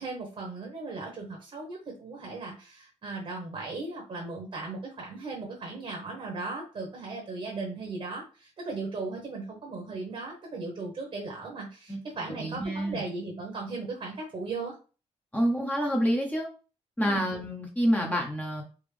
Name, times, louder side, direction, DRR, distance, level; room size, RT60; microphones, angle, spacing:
voice 1, 0.0-14.7 17.0-17.3, right 3 dB, 50° right, -1 dB, 1.1 m, -37 dB
voice 2, 12.3-13.0 15.3-16.5 17.0-18.6, equal, 10° left, 0 dB, 0.8 m, -27 dB
3.6 x 2.4 x 3.3 m, 0.35 s
cardioid pair, 90°, 13 cm